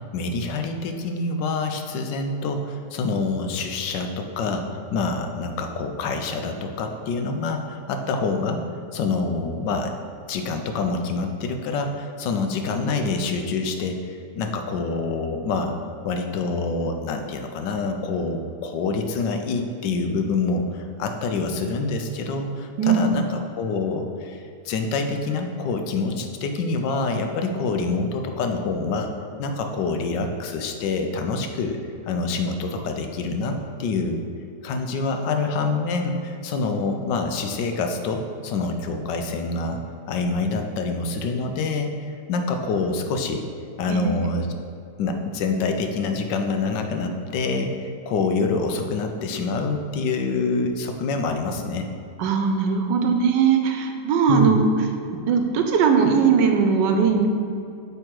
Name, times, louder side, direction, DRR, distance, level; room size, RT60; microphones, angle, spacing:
voice 1, 0.1-9.9 10.3-15.7 16.0-29.1 29.4-31.8 32.1-34.2 34.6-39.8 40.1-43.5 43.8-44.5 45.0-51.9 54.3-54.6, left 3 dB, 85° left, 5 dB, 1.3 m, -26 dB
voice 2, 22.8-23.2 43.9-44.1 52.2-54.6 55.1-57.3, right 6 dB, 85° right, 4 dB, 1.3 m, -20 dB
7.9 x 3.5 x 4.6 m, 2.6 s
omnidirectional pair, 1.9 m